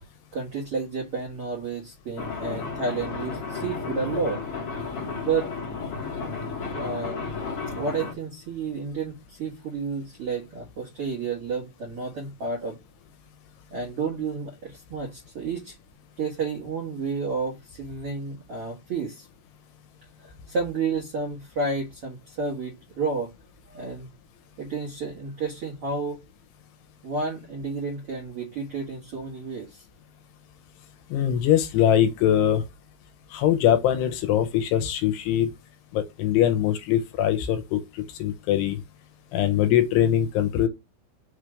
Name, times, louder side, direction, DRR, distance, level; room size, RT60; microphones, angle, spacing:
voice 1, 0.3-4.4 5.2-5.5 6.7-7.2 7.7-12.8 13.7-15.8 16.2-19.3 20.2-23.3 23.7-24.1 24.6-26.2 27.0-29.8, right 4 dB, 70° right, 1.3 m, -31 dB
sound 1, 2.2-8.1, left 4 dB, 60° left, 1.5 m, -33 dB
voice 2, 31.1-32.6 33.3-35.5 35.9-38.8 39.3-40.7, left 10 dB, 80° left, 2.8 m, -22 dB
6.2 x 3.3 x 4.9 m
omnidirectional pair, 5.0 m